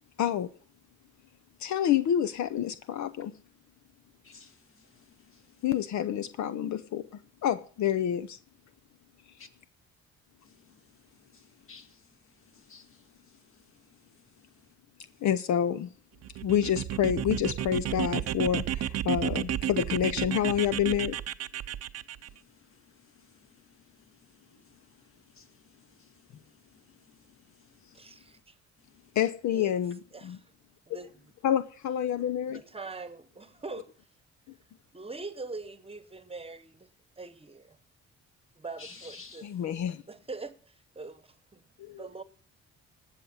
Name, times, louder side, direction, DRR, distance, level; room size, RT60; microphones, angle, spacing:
voice 1, 0.2-0.5 1.6-3.3 5.6-7.1 7.4-8.4 15.2-15.9 16.4-21.2 29.2-30.4 31.4-32.6 39.4-40.0 41.8-42.0, left 10 dB, 70° left, 0.7 m, -28 dB
voice 2, 4.2-5.6 9.4-9.5 10.4-14.7 15.0-15.3 22.2-28.4 28.8-29.1 38.8-39.5, left 4 dB, 45° left, 1.8 m, -57 dB
sound 1, 16.2-22.3, right 11 dB, 55° right, 0.6 m, -32 dB
voice 3, 27.9-28.5 29.5-29.8 30.1-30.4 30.9-31.3 32.5-33.9 34.9-36.9 37.2-37.8 38.6-39.8 40.1-41.6 42.0-42.2, right 3 dB, 20° right, 1.0 m, -43 dB
19.0 x 6.6 x 5.6 m
cardioid pair, 90°, 30 cm